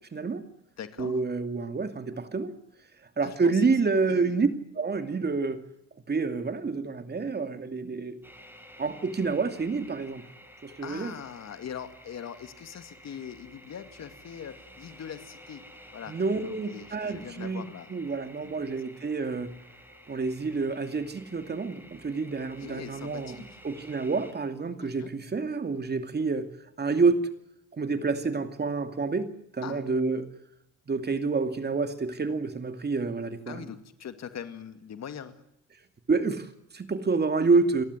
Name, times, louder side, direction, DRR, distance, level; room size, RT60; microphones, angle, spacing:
voice 1, 0.1-0.4 1.0-2.5 3.2-4.5 4.7-5.6 6.1-8.2 8.8-10.3 10.6-11.1 16.1-17.6 17.9-19.5 20.1-23.4 23.6-26.5 26.8-27.2 27.8-30.3 30.9-33.7 36.1-37.8, right 4 dB, 35° right, 9 dB, 2.6 m, -28 dB
voice 2, 0.8-1.2 3.2-3.6 4.1-4.4 10.8-15.6 15.9-18.0 18.4-18.7 22.6-23.4 24.8-25.1 29.6-29.8 33.5-35.4, left 8 dB, 60° left, 10 dB, 2.2 m, -42 dB
sound 1, 8.2-24.3, equal, 5° right, 6.8 m, -52 dB
29.0 x 12.0 x 9.7 m, 0.81 s
cardioid pair, 90°, 30 cm